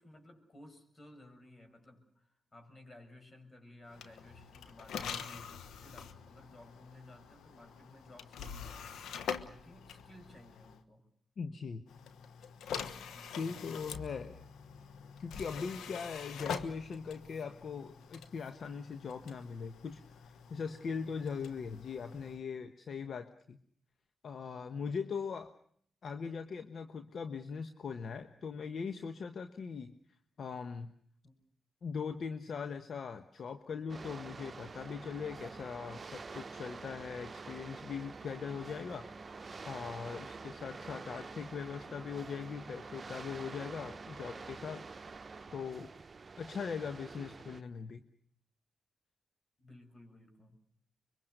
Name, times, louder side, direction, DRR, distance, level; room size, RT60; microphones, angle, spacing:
voice 1, 0.0-8.9 9.5-11.1 13.1-13.5 31.2-31.3 49.6-50.6, left 1 dB, 40° left, 6 dB, 6.7 m, -56 dB
sound 1, 3.9-10.8 11.9-22.4, left 7 dB, 85° left, 1.2 m, -45 dB
voice 2, 11.4-11.8 13.2-14.4 15.2-23.6 24.2-25.5 26.0-29.9 30.4-30.9 31.8-39.1 39.7-44.8 45.5-45.9 46.4-48.0, left 5 dB, 70° left, 9 dB, 1.2 m, -40 dB
sound 2, 33.9-47.6, right 4 dB, 45° right, 0.9 m, -47 dB
25.5 x 23.0 x 6.6 m, 0.62 s
supercardioid pair, 45°, 0 cm